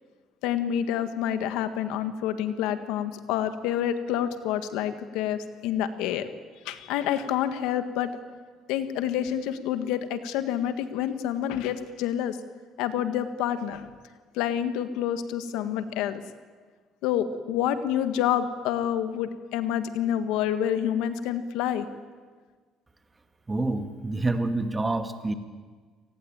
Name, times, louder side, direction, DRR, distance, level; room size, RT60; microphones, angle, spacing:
voice 1, 0.4-6.3 6.6-8.1 8.7-12.4 12.8-13.9 14.3-16.2 17.0-21.9, left 10 dB, 85° left, 10 dB, 1.7 m, -28 dB
voice 2, 23.5-25.3, right 2 dB, 20° right, 8 dB, 2.2 m, -27 dB
28.0 x 18.5 x 8.9 m, 1.5 s
cardioid pair, 95°, 0 cm